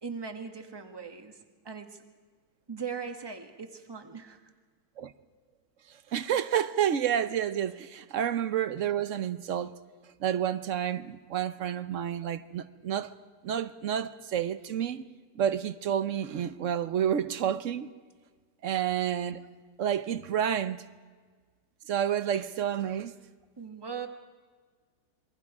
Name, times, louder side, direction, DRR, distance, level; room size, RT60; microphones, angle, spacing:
voice 1, 0.0-1.4 1.6-2.0 2.7-4.4 23.6-24.1, right 6 dB, 15° right, 1.3 m, -39 dB
voice 2, 6.1-9.7 10.2-13.1 13.4-15.0 15.3-17.9 18.6-19.4 19.8-20.8 21.9-23.1, right 9 dB, 60° right, 1.0 m, -29 dB
27.5 x 22.5 x 4.8 m
omnidirectional pair, 1.8 m